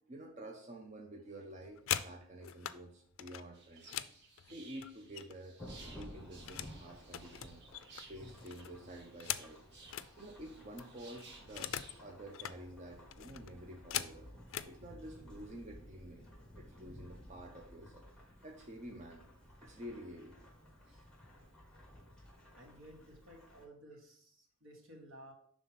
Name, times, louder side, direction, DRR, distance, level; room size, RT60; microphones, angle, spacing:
voice 1, 0.1-4.0 4.5-7.6 8.1-9.6 10.2-11.7 12.0-14.3 14.6-16.2 16.5-18.0 18.4-19.2 19.5-20.4, right 1 dB, 35° right, 1 dB, 0.6 m, -50 dB
sound 1, 1.5-2.8 3.2-5.5 5.8-6.8 7.1-10.1 10.5-10.6 10.8-12.0 12.3-12.6 13.1-14.7 15.6-15.7 16.1-16.4 16.7-17.2, left 11 dB, 75° left, 0.3 m, -42 dB
sound 2, 3.5-12.0, right 3 dB, 55° right, 1.0 m, -58 dB
Thunderstorm / Rain, 5.6-23.6, equal, 5° left, 1.3 m, -55 dB
voice 2, 22.6-25.3, right 1 dB, 80° right, 1 dB, 1.6 m, -56 dB
5.5 x 3.5 x 5.8 m, 0.63 s
head